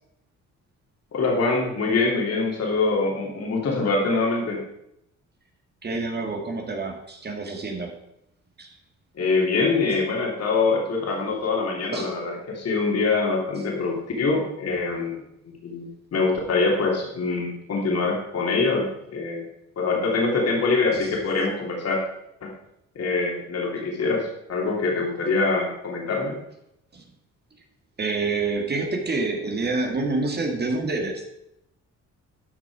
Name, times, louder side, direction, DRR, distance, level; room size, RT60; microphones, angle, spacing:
voice 1, 1.1-4.6 9.1-15.2 15.6-19.4 19.8-22.0 22.4-22.5 22.9-26.3, left 3 dB, 55° left, -1 dB, 3.0 m, -24 dB
voice 2, 5.8-8.0 8.6-8.7 11.9-12.1 20.9-21.1 26.9-27.0 28.0-31.3, right 3 dB, 35° right, 3 dB, 1.9 m, -27 dB
12.0 x 6.1 x 4.8 m, 0.80 s
cardioid pair, 90°, 30 cm